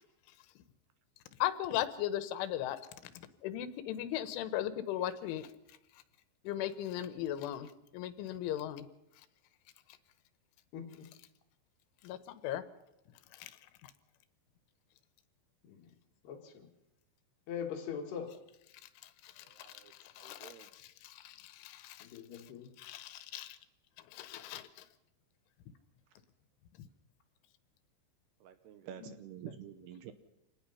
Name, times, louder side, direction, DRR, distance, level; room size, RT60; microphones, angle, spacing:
voice 1, 1.4-2.8 3.4-5.5 6.5-8.9 12.0-12.2 12.4-12.6 13.3-13.5 13.8-13.9 19.0-22.1 22.8-23.6 24.1-24.9 26.8-26.9 29.0-29.1, left 12 dB, 85° left, 12 dB, 3.4 m, -38 dB
voice 2, 10.7-11.1 15.6-15.8 16.3-16.7 17.5-18.3 22.0-22.7, left 7 dB, 65° left, 3 dB, 3.7 m, -42 dB
voice 3, 19.4-20.7 28.4-30.1, right 10 dB, 75° right, 10 dB, 2.6 m, -49 dB
26.0 x 19.0 x 5.7 m, 0.90 s
omnidirectional pair, 5.5 m